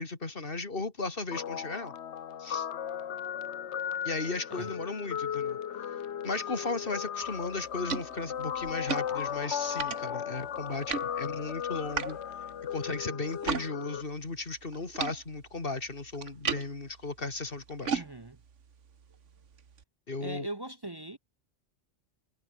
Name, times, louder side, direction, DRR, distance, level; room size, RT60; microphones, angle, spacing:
voice 1, 0.0-1.9 2.4-2.7 4.0-5.6 6.2-12.2 12.7-18.0 20.1-20.5, left 3 dB, 45° left, 2.8 m, -36 dB
Guitar, 1.3-14.0, left 9 dB, 65° left, 1.2 m, -36 dB
sound 1, 7.2-13.7 14.0-19.8, right 6 dB, 75° right, 1.7 m, -39 dB
voice 2, 17.9-18.4 20.2-21.2, right 1 dB, 25° right, 0.7 m, -40 dB
omnidirectional pair, 1.3 m